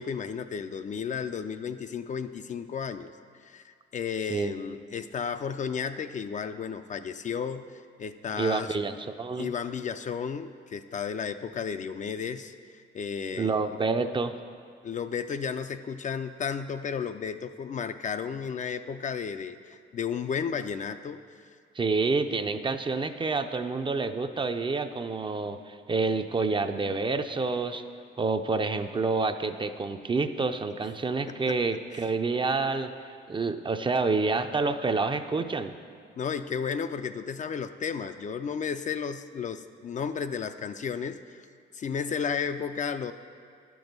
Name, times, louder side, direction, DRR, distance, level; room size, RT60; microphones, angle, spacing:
voice 1, 0.0-3.1 3.4-8.8 9.4-13.5 14.8-21.2 31.5-31.6 31.9-32.1 36.2-41.4 41.7-43.1, left 6 dB, 40° left, 9 dB, 0.4 m, -33 dB
voice 2, 8.3-9.5 13.4-14.4 21.7-27.8 28.2-35.7, right 3 dB, 25° right, 8 dB, 0.5 m, -28 dB
10.5 x 6.1 x 5.2 m, 2.1 s
cardioid pair, 90°, 20 cm